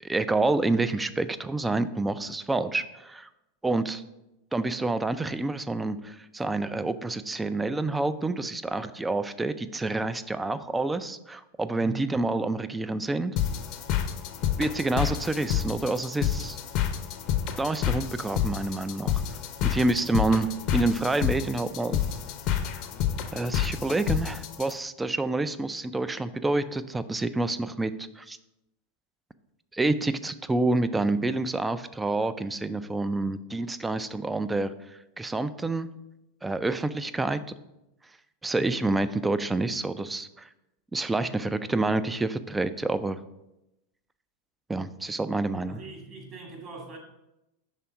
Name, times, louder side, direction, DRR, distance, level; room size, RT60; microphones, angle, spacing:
voice 1, 0.0-3.3 3.6-4.0 4.5-13.4 14.6-16.6 17.6-19.2 19.6-22.0 23.3-28.4 29.7-35.9 36.4-37.4 38.4-40.5 40.9-43.2 44.7-45.8, right 2 dB, 10° right, 14 dB, 0.3 m, -28 dB
voice 2, 11.8-12.2 38.5-38.8 45.7-47.0, right 2 dB, 40° right, 0 dB, 2.0 m, -41 dB
sound 1, 13.4-24.7, left 9 dB, 50° left, 0.6 m, -29 dB
5.8 x 3.4 x 4.8 m, 0.91 s
hypercardioid pair, 100°, 0 cm